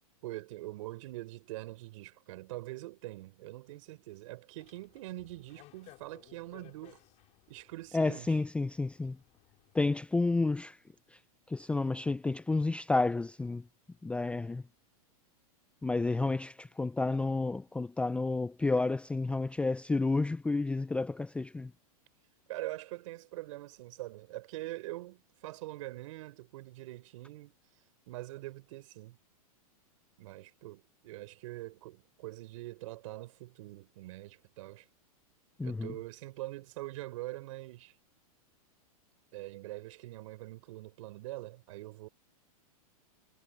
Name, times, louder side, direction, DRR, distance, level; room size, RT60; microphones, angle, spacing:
voice 1, 0.2-7.0 7.5-8.4 22.5-27.5 28.1-29.2 30.2-34.9 35.6-37.9 39.3-42.1, right 18 dB, 60° right, 4.0 m, -44 dB
sound 1, 4.6-9.8, left 17 dB, 40° left, 6.2 m, -60 dB
voice 2, 7.9-9.2 9.7-10.8 11.5-13.7 14.0-14.6 15.8-21.7 35.6-35.9, left 3 dB, 5° left, 0.5 m, -30 dB
hypercardioid pair, 120°, 19 cm